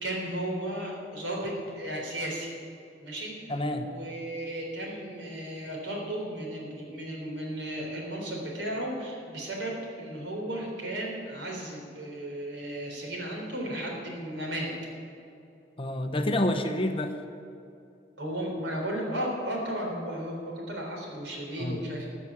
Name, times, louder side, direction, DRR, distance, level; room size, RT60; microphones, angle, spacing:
voice 1, 0.0-2.5 3.0-3.5 3.8-14.7 18.2-22.1, right 1 dB, 85° right, -1 dB, 3.8 m, -34 dB
voice 2, 3.5-3.9 15.8-17.2 21.6-21.8, left 1 dB, 30° left, 6 dB, 0.9 m, -28 dB
14.5 x 6.0 x 9.6 m, 2.6 s
head